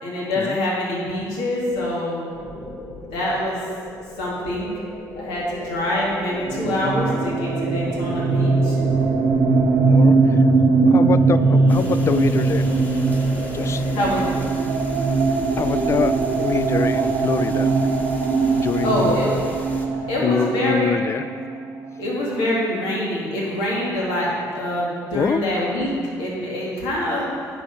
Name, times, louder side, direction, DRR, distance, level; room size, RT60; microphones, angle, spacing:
voice 1, 0.0-2.2 3.1-3.6 4.2-4.7 5.2-8.8 13.9-14.3 18.8-19.4 20.1-21.0 22.0-25.9 26.2-27.3, left 1 dB, 85° left, -5 dB, 2.2 m, -25 dB
sound 1, 2.3-14.4, left 2 dB, 60° left, 1.4 m, -36 dB
sound 2, 6.5-22.1, right 3 dB, 65° right, 0.8 m, -20 dB
voice 2, 10.9-12.7 13.5-13.8 15.6-17.7 18.6-19.3 20.2-21.2 25.1-25.4, left 7 dB, 35° left, 14 dB, 0.4 m, -24 dB
sound 3, 11.7-19.9, equal, 20° left, 1.6 m, -38 dB
9.1 x 6.2 x 5.3 m, 2.1 s
supercardioid pair, 75°, 8 cm